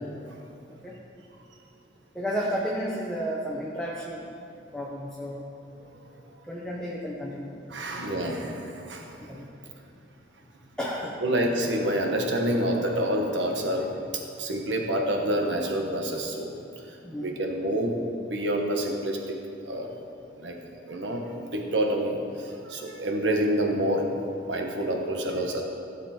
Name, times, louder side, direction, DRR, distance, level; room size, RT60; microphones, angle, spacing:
voice 1, 2.1-4.3 4.7-5.4 6.5-7.6 8.0-8.1 9.3-9.7 10.8-11.1 17.0-17.3, equal, 5° left, -5 dB, 1.0 m, -32 dB
voice 2, 7.7-9.3 11.2-14.0 14.4-16.5 17.2-17.9 18.2-19.4 19.6-19.9 20.4-20.5 20.9-24.1 24.5-25.6, right 1 dB, 70° right, 2 dB, 1.4 m, -27 dB
15.5 x 7.1 x 4.4 m, 2.5 s
head